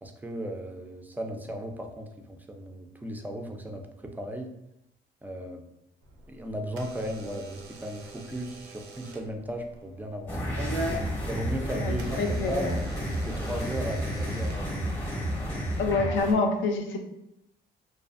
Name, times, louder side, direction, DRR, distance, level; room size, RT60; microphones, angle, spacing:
voice 1, 0.0-4.5 5.2-5.6 6.3-10.4 11.2-12.7 13.2-15.0, right 1 dB, 10° right, 3 dB, 0.3 m, -36 dB
Door / Alarm, 6.0-15.2, right 1 dB, 85° right, 0.5 m, -42 dB
sound 1, 10.3-16.3, equal, 10° left, 0.7 m, -31 dB
voice 2, 11.8-12.8 15.8-17.0, left 3 dB, 75° left, 4 dB, 0.5 m, -27 dB
2.5 x 2.3 x 2.4 m, 0.83 s
cardioid pair, 90°, 20 cm